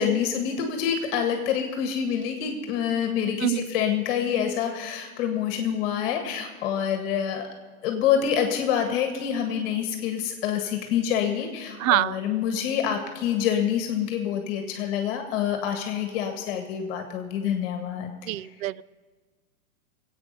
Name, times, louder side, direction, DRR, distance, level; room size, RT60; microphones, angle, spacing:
voice 1, 0.0-7.5 7.8-18.1, left 8 dB, 40° left, 5 dB, 1.7 m, -26 dB
voice 2, 11.8-12.2 18.3-18.8, right 14 dB, 70° right, 22 dB, 0.5 m, -24 dB
22.0 x 8.6 x 5.3 m, 1.4 s
hypercardioid pair, 155°, 43 cm